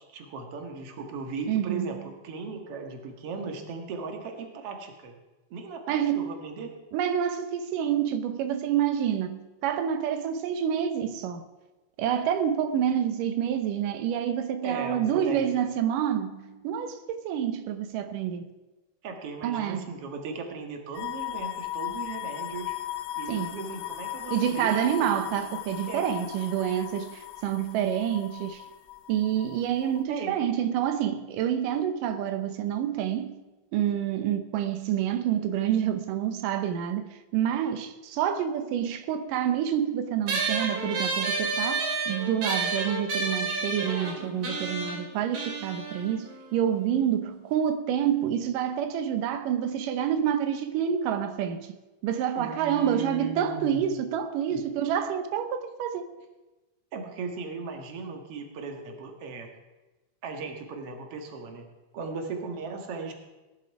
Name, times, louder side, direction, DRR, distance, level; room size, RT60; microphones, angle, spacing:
voice 1, 0.1-5.1 5.5-6.8 14.6-15.5 19.0-22.8 23.2-25.2 25.8-26.0 30.1-30.4 52.3-53.9 54.5-54.6 56.9-59.5 60.2-61.7 61.9-63.1, right 4 dB, 50° right, 2.5 m, -37 dB
voice 2, 1.5-1.9 5.9-6.4 6.9-11.4 12.0-18.5 19.4-19.9 23.3-23.5 24.3-28.6 29.1-33.4 33.7-51.7 52.0-56.2, right 9 dB, 90° right, 2.5 m, -28 dB
sound 1, 20.9-30.0, left 15 dB, 85° left, 1.5 m, -37 dB
sound 2, 40.3-47.1, right 3 dB, 70° right, 3.8 m, -31 dB
19.0 x 10.5 x 4.7 m
omnidirectional pair, 3.7 m